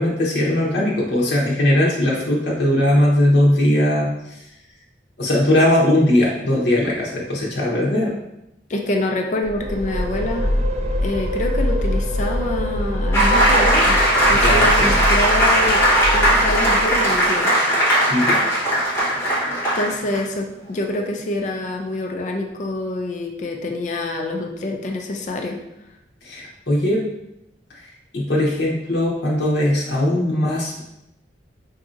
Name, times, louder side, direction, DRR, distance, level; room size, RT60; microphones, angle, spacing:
voice 1, 0.0-4.4 5.2-8.1 14.3-14.9 18.1-18.4 26.2-27.1 28.1-30.8, left 1 dB, 70° left, -5 dB, 0.8 m, -19 dB
voice 2, 8.7-10.5 11.0-14.0 14.3-15.8 16.1-17.5 19.7-25.6, left 2 dB, 45° left, 2 dB, 0.4 m, -26 dB
sound 1, 9.4-17.3, left 1 dB, 40° right, 0.4 m, -24 dB
sound 2, 13.1-20.2, right 1 dB, 15° left, 0.9 m, -18 dB
4.7 x 2.7 x 2.5 m, 0.86 s
head